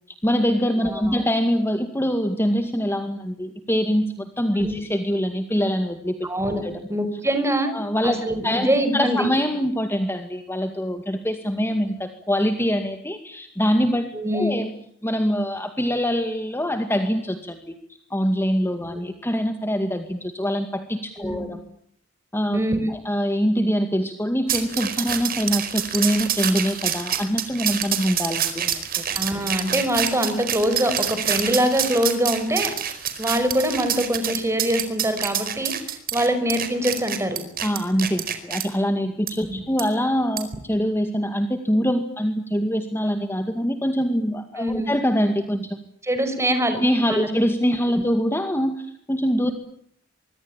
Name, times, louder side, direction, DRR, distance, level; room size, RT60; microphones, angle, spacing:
voice 1, 0.2-6.3 6.6-6.7 7.7-14.1 14.3-14.7 15.0-17.7 18.1-21.6 22.3-22.6 22.9-29.0 37.6-45.8 46.8-49.5, equal, 10° left, 6 dB, 2.2 m, -24 dB
voice 2, 0.9-1.2 4.6-4.8 6.2-6.6 6.9-7.7 8.0-9.3 14.1-14.6 18.9-19.0 21.2-21.5 22.5-22.9 29.1-32.7 33.2-37.4 39.5-39.6 44.6-44.9 46.0-46.8 47.1-47.3, equal, 15° right, 9 dB, 5.5 m, -24 dB
sound 1, 24.5-38.6 39.3-39.4 39.8-39.9 40.4-40.6, right 9 dB, 45° right, 4.7 m, -27 dB
25.0 x 24.0 x 8.9 m, 0.69 s
head